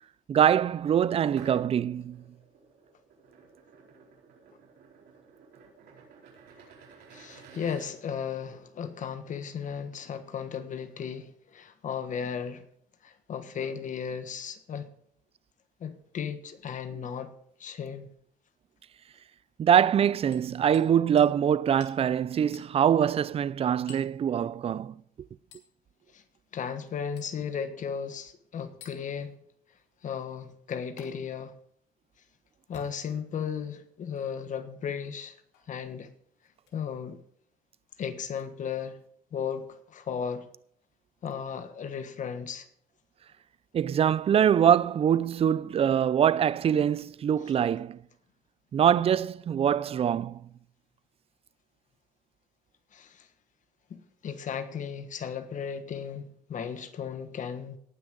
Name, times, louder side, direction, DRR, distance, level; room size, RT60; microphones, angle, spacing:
voice 1, 0.3-2.2 19.6-25.0 43.7-48.0 48.7-50.4, right 9 dB, 35° right, 0.4 m, -24 dB
sound 1, 1.3-7.9, right 5 dB, 75° right, 4.8 m, -52 dB
voice 2, 7.1-12.6 13.0-14.9 15.8-17.3 17.6-18.1 26.1-26.2 26.5-29.3 30.0-31.5 32.7-35.4 35.7-36.1 36.7-37.2 38.0-39.0 39.3-40.5 41.2-42.7 52.9-53.3 53.9-57.8, left 7 dB, 50° left, 1.4 m, -35 dB
Hammer, 20.3-20.9 21.2-21.3 21.8-22.0 22.5-22.7 23.9-24.2 25.5-25.7 27.2-27.4 28.8-29.0 31.0-31.1 32.6-33.4 34.1-34.3 35.5-35.7 36.6-36.8 38.4-38.5, left 6 dB, 80° left, 2.9 m, -52 dB
18.0 x 6.3 x 5.2 m
cardioid pair, 110°, 17 cm